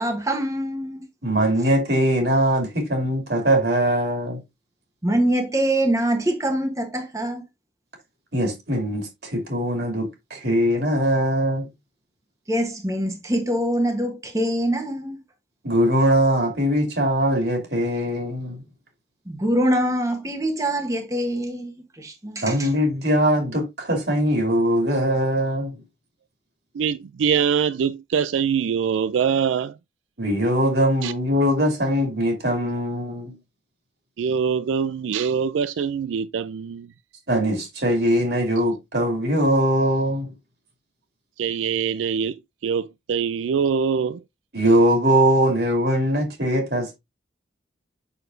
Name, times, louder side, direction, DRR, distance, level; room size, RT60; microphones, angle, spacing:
voice 1, 0.0-1.1 5.0-7.4 12.5-15.2 19.3-22.7, right 1 dB, 15° right, 1.1 m, -24 dB
voice 2, 1.2-4.4 8.3-11.7 15.6-18.6 22.4-25.8 30.2-33.4 37.3-40.3 44.5-47.0, equal, 60° right, 2.7 m, -21 dB
voice 3, 26.7-29.7 31.0-31.1 34.2-36.9 41.4-44.2, right 7 dB, 90° right, 0.3 m, -24 dB
7.0 x 6.3 x 2.6 m
head